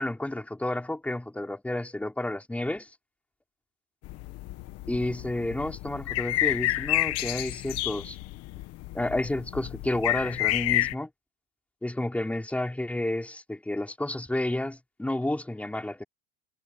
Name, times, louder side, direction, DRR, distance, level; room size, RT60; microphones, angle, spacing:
voice 1, 0.0-2.9 4.9-8.2 8.9-11.1 11.8-16.0, left 1 dB, 5° left, 4.5 m, -31 dB
sound 1, 4.0-10.9, left 17 dB, 45° left, 1.5 m, -30 dB
supercardioid pair, 150°, 34 cm